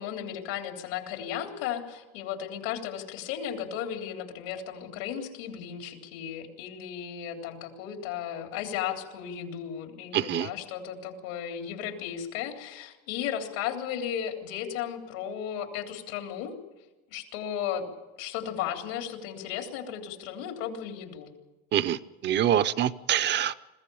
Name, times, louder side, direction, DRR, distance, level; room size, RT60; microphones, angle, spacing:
voice 1, 0.0-16.6 17.1-17.9 18.2-21.3, left 9 dB, 90° left, 3 dB, 3.4 m, -35 dB
voice 2, 10.1-10.5 21.7-23.5, right 10 dB, 40° right, 12 dB, 0.6 m, -25 dB
22.0 x 15.5 x 8.5 m, 1.1 s
cardioid pair, 150°, 29 cm